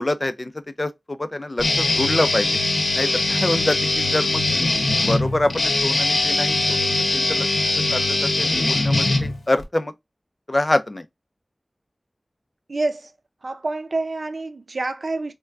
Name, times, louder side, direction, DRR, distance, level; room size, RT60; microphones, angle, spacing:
voice 1, 0.0-2.6 2.9-4.4 5.1-6.8 7.1-7.5 7.9-9.9 10.5-11.1, left 1 dB, 35° left, 0.5 m, -25 dB
Guitar, 1.6-9.6, left 2 dB, 85° left, 0.9 m, -21 dB
voice 2, 12.7-13.1 13.4-15.3, right 2 dB, 75° right, 0.5 m, -27 dB
4.3 x 2.2 x 2.4 m
wide cardioid pair, 65°, 0 cm